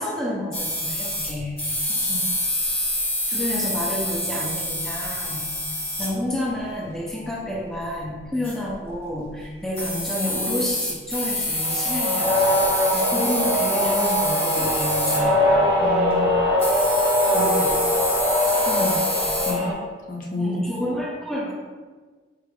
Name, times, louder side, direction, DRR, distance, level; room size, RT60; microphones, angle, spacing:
voice 1, 0.0-1.6 3.3-5.4 6.0-15.4 18.7-19.7 20.4-21.5, left 1 dB, 5° left, -5 dB, 0.5 m, -30 dB
sound 1, 0.5-6.1 8.4-8.7 9.4-9.5 9.7-15.3 16.6-19.5, left 1 dB, 30° left, 1.2 m, -27 dB
sound 2, 11.5-19.7, left 1 dB, 25° right, 0.9 m, -22 dB
voice 2, 15.8-16.4 16.9-17.0 17.3-17.9 19.5-19.7 20.1-20.6, left 2 dB, 45° left, -1 dB, 0.6 m, -30 dB
4.4 x 2.4 x 3.4 m, 1.4 s
head